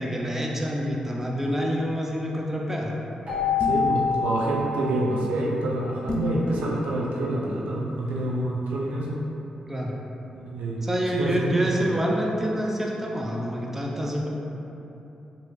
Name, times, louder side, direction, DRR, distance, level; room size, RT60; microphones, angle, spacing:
voice 1, 0.0-3.0 9.7-9.9 10.8-14.3, equal, 15° right, -2 dB, 0.5 m, -27 dB
Keyboard (musical), 3.3-5.9, left 5 dB, 50° right, 1.3 m, -27 dB
sound 1, 3.6-4.0 6.1-6.4, left 2 dB, 40° left, 0.5 m, -29 dB
voice 2, 3.6-9.2 10.3-10.9 11.2-11.7, right 1 dB, 90° right, -4 dB, 0.4 m, -27 dB
3.1 x 2.6 x 3.1 m, 3.0 s
cardioid pair, 55°, 2 cm